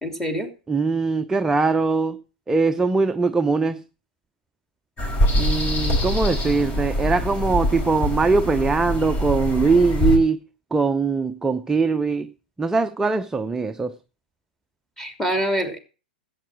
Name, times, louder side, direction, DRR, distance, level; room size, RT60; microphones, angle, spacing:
voice 1, 0.0-0.5 15.0-15.8, equal, 5° left, 3.0 m, -25 dB
voice 2, 0.7-2.2 2.5-3.8 5.4-10.4 10.7-12.3 12.6-14.0, right 4 dB, 10° right, 0.7 m, -21 dB
sound 1, 5.0-10.2, left 1 dB, 25° left, 4.4 m, -24 dB
13.5 x 8.7 x 6.1 m
hypercardioid pair, 115°, 5 cm